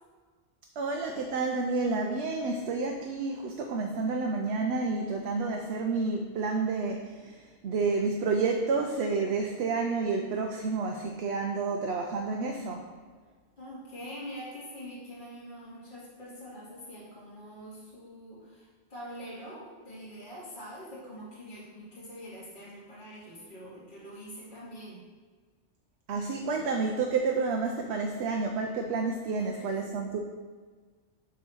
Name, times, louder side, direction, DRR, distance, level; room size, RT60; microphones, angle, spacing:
voice 1, 0.8-12.9 26.1-30.2, right 4 dB, 70° right, 2 dB, 0.8 m, -30 dB
voice 2, 13.6-25.0 29.4-29.9, equal, 45° left, -9 dB, 2.3 m, -44 dB
7.2 x 3.1 x 6.0 m, 1.5 s
omnidirectional pair, 1.2 m